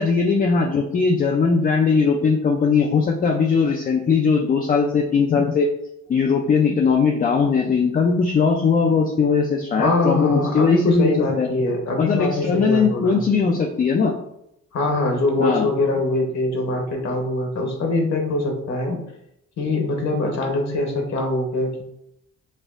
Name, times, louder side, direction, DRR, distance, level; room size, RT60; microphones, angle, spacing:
voice 1, 0.0-5.7 6.1-11.1 11.4-11.5 12.0-14.2 15.4-15.7, left 5 dB, 30° left, 2 dB, 0.4 m, -19 dB
voice 2, 9.8-13.2 14.7-19.0 19.6-21.8, left 2 dB, 60° left, 2 dB, 0.9 m, -23 dB
4.3 x 2.4 x 2.4 m, 0.80 s
cardioid pair, 90°, 30 cm